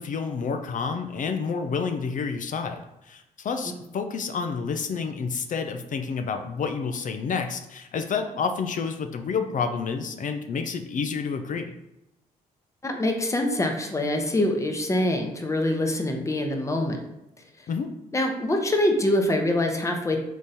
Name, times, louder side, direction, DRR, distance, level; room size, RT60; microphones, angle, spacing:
voice 1, 0.0-11.7 17.7-17.9, left 5 dB, 50° left, 6 dB, 0.5 m, -29 dB
voice 2, 12.8-17.0 18.1-20.2, left 1 dB, 20° left, 3 dB, 0.8 m, -24 dB
3.8 x 3.1 x 4.1 m, 0.89 s
supercardioid pair, 65°, 16 cm